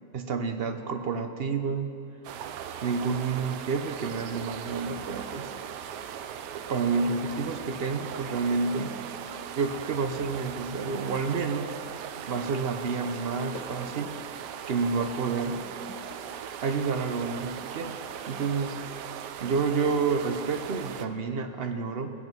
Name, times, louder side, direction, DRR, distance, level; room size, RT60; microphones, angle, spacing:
voice 1, 0.1-1.9 2.8-5.5 6.7-8.9 9.6-11.7 12.3-14.1 14.7-15.6 16.6-18.0 18.3-18.8 19.4-22.1, right 4 dB, 55° right, 6 dB, 0.7 m, -29 dB
sound 1, 2.2-21.1, right 9 dB, 90° right, 1.2 m, -39 dB
sound 2, 7.7-9.4 9.7-9.8, left 1 dB, 55° left, 4.8 m, -51 dB
sound 3, 13.0-17.4 18.2-18.3 18.5-18.7 19.2-19.3, left 4 dB, 90° left, 1.6 m, -50 dB
19.0 x 8.4 x 5.4 m, 2.5 s
omnidirectional pair, 1.7 m